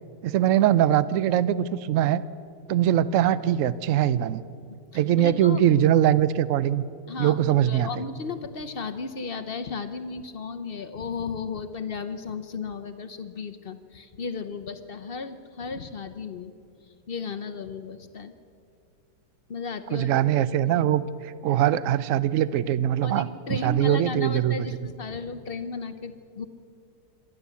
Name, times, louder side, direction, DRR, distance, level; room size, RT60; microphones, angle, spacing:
voice 1, 0.2-2.2 2.7-4.4 4.9-6.8 7.2-8.0 19.9-21.0 21.4-24.6, right 11 dB, 70° right, 16 dB, 0.7 m, -22 dB
voice 2, 4.9-5.6 7.1-16.5 17.1-18.3 19.5-20.2 20.6-21.0 23.0-26.4, left 4 dB, 55° left, 10 dB, 0.6 m, -35 dB
26.5 x 12.0 x 8.3 m, 2.5 s
omnidirectional pair, 2.0 m